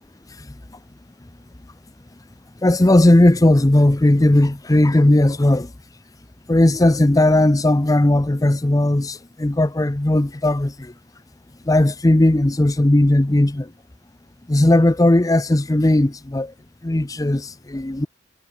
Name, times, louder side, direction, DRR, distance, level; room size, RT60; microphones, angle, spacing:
voice 1, 2.6-5.7 6.5-10.7 11.7-13.7 14.5-16.5 16.8-18.1, left 1 dB, 20° left, 0.6 m, -16 dB
head